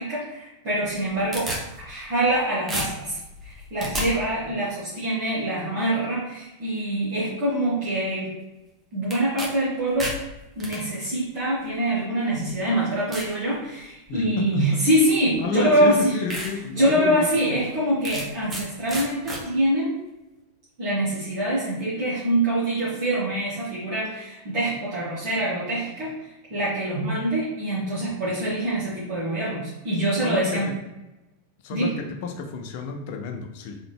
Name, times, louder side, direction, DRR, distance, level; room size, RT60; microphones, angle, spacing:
voice 1, 0.0-8.3 8.9-10.2 10.6-16.2 16.7-19.9 20.8-30.7 31.7-32.0, right 1 dB, 45° right, -9 dB, 1.6 m, -25 dB
sound 1, 0.8-2.4 2.7-4.1 9.1-9.5 9.8-10.8 11.7-11.8 12.4-12.5 13.1-13.3 13.8-14.2 15.3-15.4 15.9-16.0 16.3-16.5 16.9-17.0 18.0-18.6 18.9-19.4, right 1 dB, 20° right, 1.1 m, -32 dB
voice 2, 14.1-14.8 15.4-17.6 30.2-30.7 31.6-33.8, left 5 dB, 50° left, 5 dB, 0.6 m, -31 dB
3.9 x 3.9 x 3.4 m, 0.97 s
figure-of-eight pair, 90°, 0 cm